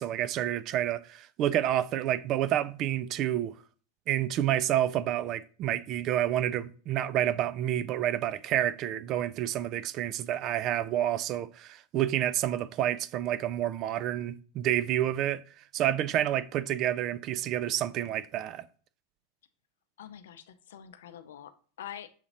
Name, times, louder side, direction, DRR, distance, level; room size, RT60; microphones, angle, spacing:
voice 1, 0.0-3.6 4.1-15.4 15.7-18.7, right 12 dB, 45° right, 0.3 m, -29 dB
voice 2, 20.0-22.1, left 10 dB, 70° left, 0.5 m, -46 dB
7.1 x 2.9 x 2.5 m
hypercardioid pair, 90°, 0 cm